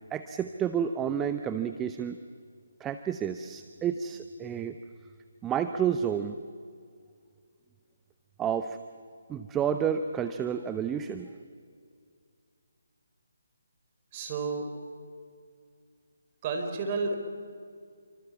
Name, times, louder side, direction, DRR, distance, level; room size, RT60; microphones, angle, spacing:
voice 1, 0.0-2.2 2.8-4.8 5.4-6.4 8.4-8.8 9.3-11.3, right 8 dB, 10° right, 9 dB, 0.9 m, -30 dB
voice 2, 14.1-14.7 16.4-17.2, right 4 dB, 30° right, 4 dB, 4.7 m, -31 dB
29.5 x 25.5 x 7.3 m, 2.2 s
figure-of-eight pair, 145°, 0 cm